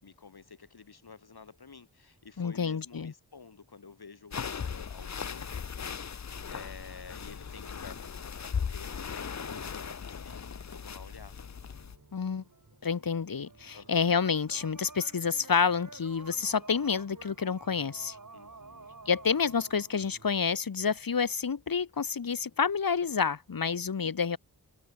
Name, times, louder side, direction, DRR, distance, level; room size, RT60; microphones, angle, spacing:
voice 1, 0.0-5.5 6.5-11.4 13.7-14.1 18.3-18.9, left 5 dB, 85° left, 3.9 m, -50 dB
voice 2, 2.4-3.1 12.1-12.4 12.8-18.2 19.1-24.4, left 6 dB, 65° left, 1.3 m, -29 dB
Movement in bed blanket, 4.3-12.0, left 6 dB, 50° left, 0.7 m, -38 dB
sound 1, 6.3-20.6, right 3 dB, 55° right, 4.5 m, -53 dB
wide cardioid pair, 60°, 37 cm